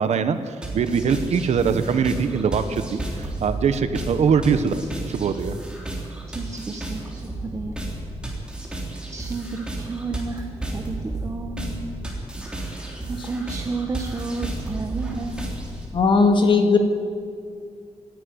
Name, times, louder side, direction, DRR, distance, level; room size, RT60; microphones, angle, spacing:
voice 1, 0.0-4.7 5.1-5.5, right 6 dB, 75° right, 10 dB, 1.3 m, -22 dB
sound 1, 0.6-15.9, right 2 dB, 10° right, 3.4 m, -32 dB
voice 2, 6.3-7.8 9.0-11.9 12.4-12.5 13.1-15.5, right 3 dB, 25° right, 4 dB, 1.1 m, -32 dB
voice 3, 15.9-16.8, left 4 dB, 45° left, 5 dB, 2.0 m, -17 dB
27.5 x 11.0 x 9.7 m, 2.3 s
wide cardioid pair, 180°, 12 cm